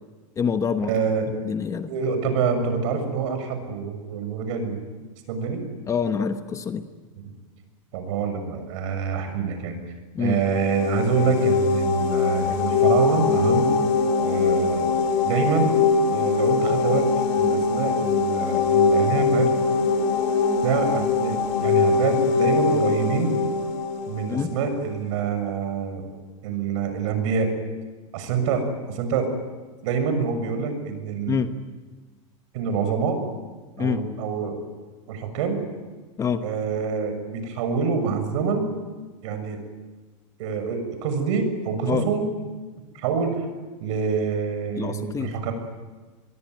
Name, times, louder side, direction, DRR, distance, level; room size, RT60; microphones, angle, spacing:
voice 1, 0.4-0.9 1.3-1.9 5.9-6.8 10.1-10.4 24.3-24.5 31.3-31.5 33.8-34.0 36.2-36.4 41.9-42.1 44.8-45.4, left 6 dB, 20° left, 9 dB, 1.2 m, -26 dB
voice 2, 0.9-1.3 1.9-4.8 5.3-5.6 7.9-9.8 10.2-13.7 14.2-14.9 15.2-15.7 16.1-17.1 17.4-19.5 20.6-23.3 24.1-26.0 26.4-27.5 28.1-29.3 29.8-31.4 32.5-33.2 33.8-34.6 35.1-35.6 36.4-38.7 39.2-39.6 40.4-42.2 42.9-43.4 43.8-45.5, right 5 dB, 65° right, 7 dB, 6.7 m, -26 dB
sound 1, 10.3-24.9, left 5 dB, 50° left, 4.3 m, -22 dB
25.5 x 22.0 x 9.5 m, 1.3 s
supercardioid pair, 155°, 17 cm